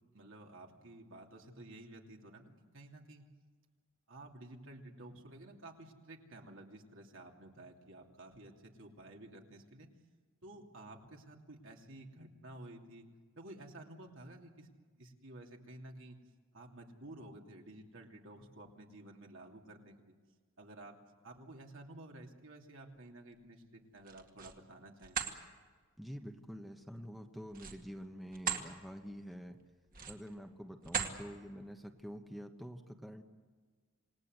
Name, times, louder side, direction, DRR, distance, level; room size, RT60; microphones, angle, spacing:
voice 1, 0.1-3.2 4.1-9.9 10.4-13.1 13.3-14.7 15.0-16.2 16.5-20.1 20.6-21.0 21.2-25.2, right 1 dB, 65° right, 1 dB, 3.0 m, -52 dB
sound 1, 24.0-24.6 25.0-25.4 27.5-28.7 29.1-29.3 29.9-30.3 30.8-31.2, right 7 dB, 45° right, 2.1 m, -38 dB
voice 2, 26.0-29.6 30.1-33.2, equal, ahead, 3 dB, 1.2 m, -47 dB
27.5 x 19.5 x 8.0 m, 1.5 s
head